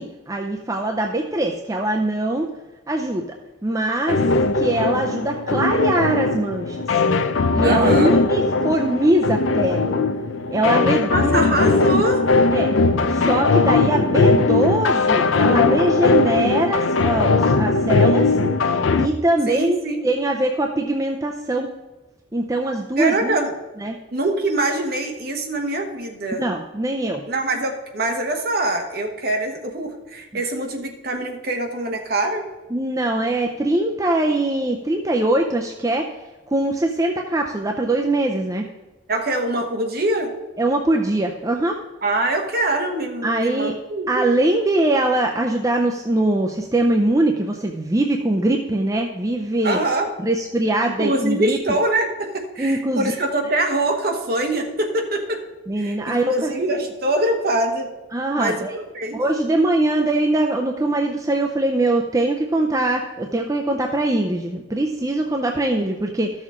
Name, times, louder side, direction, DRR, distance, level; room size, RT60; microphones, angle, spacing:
voice 1, 0.0-2.5 2.9-3.3 3.6-4.2 4.5-6.8 7.5-9.9 10.5-11.4 12.5-12.7 13.1-18.2 19.0-21.7 22.3-23.4 23.8-24.0 26.4-27.2 32.7-36.1 36.5-38.6 40.6-41.8 43.2-43.7 44.1-49.8 50.2-51.6 52.6-53.1 55.7-56.5 58.1-58.8 59.1-66.3, right 1 dB, 15° right, 2 dB, 0.4 m, -22 dB
sound 1, 4.1-19.1, left 3 dB, 75° left, 0.5 m, -19 dB
voice 2, 7.6-8.2 11.1-12.2 19.5-20.0 23.0-23.6 24.1-26.5 27.2-32.4 39.1-40.3 42.0-44.3 49.6-50.1 50.8-55.4 55.8-57.9 58.4-58.6 58.9-59.2, right 1 dB, 50° right, 3 dB, 1.1 m, -24 dB
13.5 x 6.4 x 3.6 m, 1.1 s
head